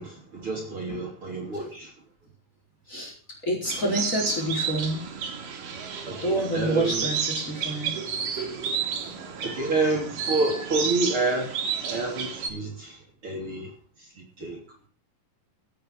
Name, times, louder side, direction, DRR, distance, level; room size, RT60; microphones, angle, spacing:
voice 1, 0.0-1.9 6.0-7.1 9.4-11.6 11.8-14.6, right 3 dB, 40° right, 0 dB, 3.7 m, -29 dB
voice 2, 3.4-5.0 6.2-8.0, right 1 dB, 20° left, 0 dB, 4.9 m, -28 dB
sound 1, 3.7-12.5, right 6 dB, 70° right, 3.9 m, -31 dB
17.0 x 8.6 x 6.3 m, 0.42 s
omnidirectional pair, 4.0 m